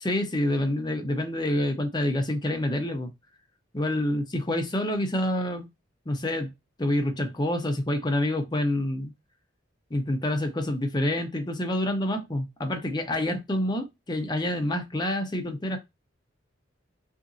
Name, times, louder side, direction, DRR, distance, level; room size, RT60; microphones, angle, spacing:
voice 1, 0.0-3.1 3.7-5.7 6.1-6.5 6.8-9.1 9.9-15.8, left 1 dB, 20° left, 0.6 m, -27 dB
2.8 x 2.6 x 2.5 m
head